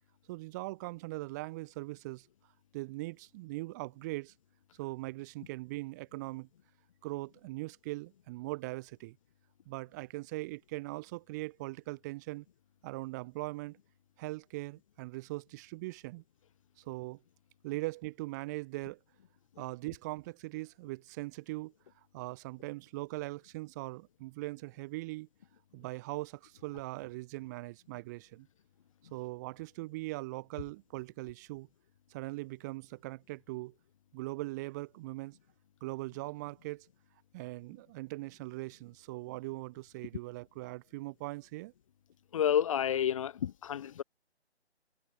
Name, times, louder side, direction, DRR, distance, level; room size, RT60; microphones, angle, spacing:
voice 1, 0.3-2.3 2.7-4.3 4.8-6.5 7.0-9.2 9.6-12.4 12.8-13.8 14.2-16.2 16.8-17.2 17.6-19.0 19.6-21.7 22.1-25.3 25.7-28.5 29.1-31.7 32.1-33.7 34.1-35.4 35.8-36.9 37.3-41.7, right 21 dB, 15° right, 1.6 m, -40 dB
voice 2, 42.3-44.0, left 9 dB, 30° left, 1.4 m, -30 dB
figure-of-eight pair, 155°, 33 cm